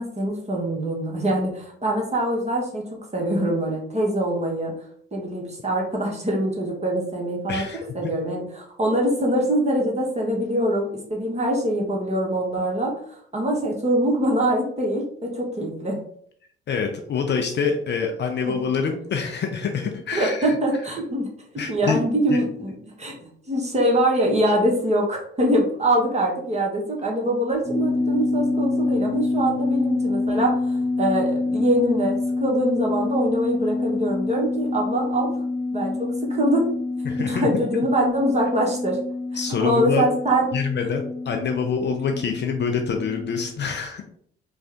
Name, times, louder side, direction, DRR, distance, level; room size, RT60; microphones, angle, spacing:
voice 1, 0.0-2.8 3.1-4.7 5.1-7.6 7.9-16.0 18.5-18.6 20.1-21.3 21.7-35.3 35.7-36.7 37.3-39.0 39.6-40.5, right 1 dB, 20° right, -1 dB, 1.5 m, -23 dB
voice 2, 7.5-7.9 16.7-20.6 21.6-22.0 22.3-22.4 37.0-37.6 39.3-40.1 40.5-44.0, left 6 dB, 35° left, 3 dB, 0.6 m, -26 dB
sound 1, 27.6-43.5, left 3 dB, 5° left, 1.0 m, -27 dB
4.9 x 2.4 x 3.5 m, 0.62 s
figure-of-eight pair, 45°, 29 cm